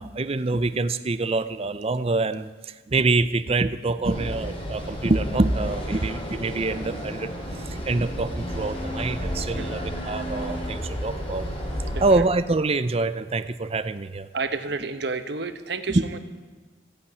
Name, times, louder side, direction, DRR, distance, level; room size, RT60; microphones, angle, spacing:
voice 1, 0.0-11.5 12.0-14.3 15.9-16.0, right 3 dB, 30° right, 12 dB, 0.5 m, -25 dB
sound 1, 4.0-12.2, equal, 30° left, 3.2 m, -32 dB
voice 2, 11.8-12.2 14.3-16.2, right 4 dB, 65° right, 9 dB, 1.1 m, -31 dB
14.5 x 8.6 x 9.6 m, 1.4 s
head